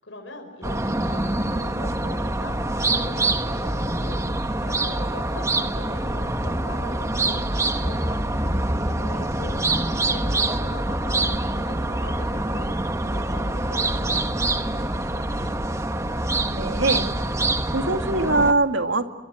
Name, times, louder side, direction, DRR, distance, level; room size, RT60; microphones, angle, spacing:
voice 1, 0.0-8.2 8.5-15.6, left 2 dB, 90° left, 3 dB, 5.8 m, -41 dB
sound 1, 0.6-18.5, right 2 dB, 15° right, 1.3 m, -25 dB
voice 2, 16.5-17.1 17.7-19.1, right 2 dB, 90° right, 6 dB, 2.2 m, -22 dB
30.0 x 24.5 x 7.7 m, 1.2 s
head